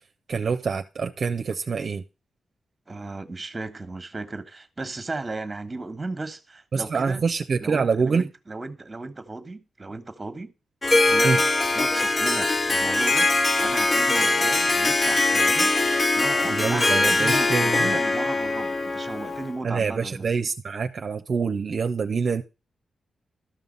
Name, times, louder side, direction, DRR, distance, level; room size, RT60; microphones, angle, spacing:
voice 1, 0.3-2.0 6.7-8.2 11.2-11.4 16.4-18.0 19.6-22.4, right 5 dB, 55° right, 0.6 m, -25 dB
voice 2, 2.9-7.2 7.6-10.5 11.0-11.4 11.7-13.3 13.6-15.8 16.1-20.3, right 3 dB, 25° right, 1.3 m, -35 dB
Harp, 10.8-19.6, left 2 dB, 35° left, 0.7 m, -22 dB
13.0 x 5.6 x 5.3 m
cardioid pair, 80°, 0 cm